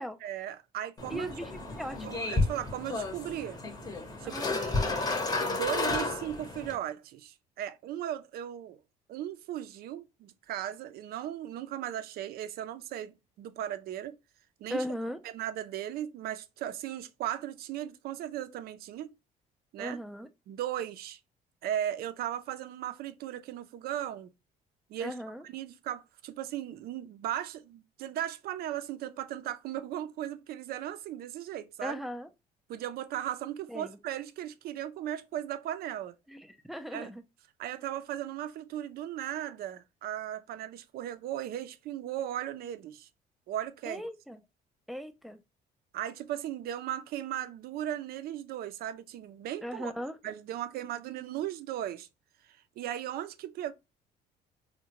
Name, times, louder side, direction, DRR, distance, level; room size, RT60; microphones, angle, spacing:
voice 1, 0.2-1.3 2.0-3.6 4.2-4.9 5.3-8.8 9.1-14.2 14.6-14.8 15.2-19.1 19.7-20.0 20.5-21.2 21.6-24.3 24.9-25.1 25.4-32.0 32.7-36.2 36.9-37.1 37.6-43.1 43.5-44.0 45.9-49.9 50.2-52.1 52.8-53.7, right 11 dB, 65° right, 0.4 m, -37 dB
sound 1, 1.0-6.8, left 3 dB, 20° left, 0.7 m, -32 dB
voice 2, 1.1-2.1 4.3-4.7 14.7-15.2 19.8-20.3 25.0-25.4 31.8-32.3 33.7-34.0 36.3-37.2 43.9-44.4 44.9-45.4 49.6-50.2, equal, ahead, 0.4 m, -38 dB
3.6 x 2.1 x 2.8 m
cardioid pair, 110°, 17 cm